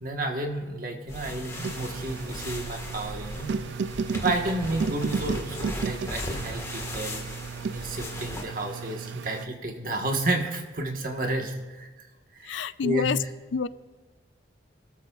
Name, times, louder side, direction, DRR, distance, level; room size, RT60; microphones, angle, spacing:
voice 1, 0.0-3.5 4.2-7.2 7.7-12.1 12.3-13.1, right 1 dB, 50° right, 3 dB, 1.4 m, -31 dB
sound 1, 1.1-8.4, left 1 dB, 15° left, 1.6 m, -38 dB
sound 2, 1.5-9.5, right 5 dB, 75° right, 0.4 m, -34 dB
voice 2, 12.5-13.2 13.5-13.7, left 6 dB, 85° left, 16 dB, 0.4 m, -27 dB
25.0 x 13.0 x 2.4 m, 1.2 s
head